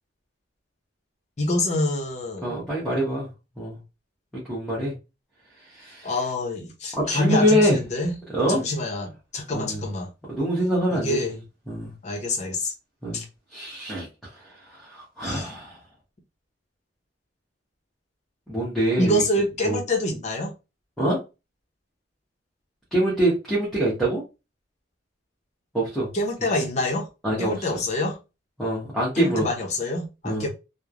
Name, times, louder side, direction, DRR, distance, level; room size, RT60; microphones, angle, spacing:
voice 1, 1.4-2.7 6.0-8.1 8.5-10.1 10.9-11.3 12.0-12.7 13.1-13.3 15.2-15.5 19.0-20.5 26.1-27.1 27.4-28.2 29.1-30.5, left 1 dB, 35° left, 0.6 m, -26 dB
voice 2, 2.4-3.3 3.6-3.8 4.3-4.9 5.8-6.1 6.9-7.8 8.3-8.6 9.5-9.8 10.3-11.4 11.7-11.9 13.0-13.2 13.5-14.1 14.3-14.4 14.7-15.8 18.5-19.2 19.6-19.8 21.0-21.2 22.9-24.2 25.7-26.1 27.2-27.7 28.6-29.5 30.2-30.5, equal, ahead, 0.8 m, -24 dB
3.1 x 2.0 x 2.4 m
head